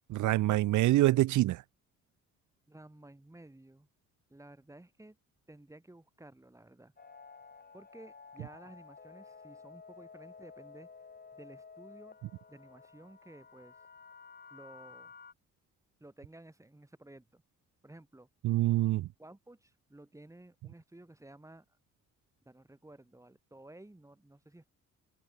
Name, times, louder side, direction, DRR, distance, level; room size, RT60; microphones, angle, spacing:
voice 1, 0.1-1.6 18.4-19.1, right 16 dB, 75° right, 0.7 m, -26 dB
voice 2, 2.7-3.9 4.3-5.2 5.5-6.9 7.7-10.9 11.3-12.2 12.5-13.8 14.5-15.1 16.0-17.4 17.8-18.3 19.2-21.6 22.4-24.7, right 1 dB, 10° right, 6.2 m, -54 dB
sound 1, 7.0-15.3, left 5 dB, 30° left, 4.2 m, -53 dB
open air
cardioid pair, 90°, 30 cm